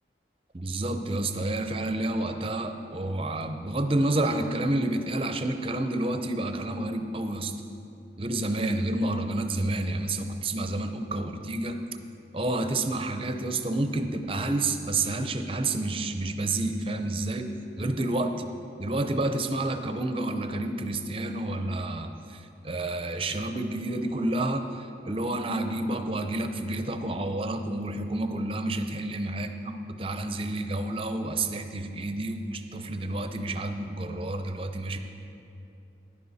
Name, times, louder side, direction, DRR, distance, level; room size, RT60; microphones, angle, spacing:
voice 1, 0.5-7.5 8.2-11.8 12.3-17.5 17.8-18.3 18.8-35.0, right 2 dB, 30° right, 7 dB, 0.6 m, -29 dB
14.5 x 11.0 x 4.1 m, 2.9 s
head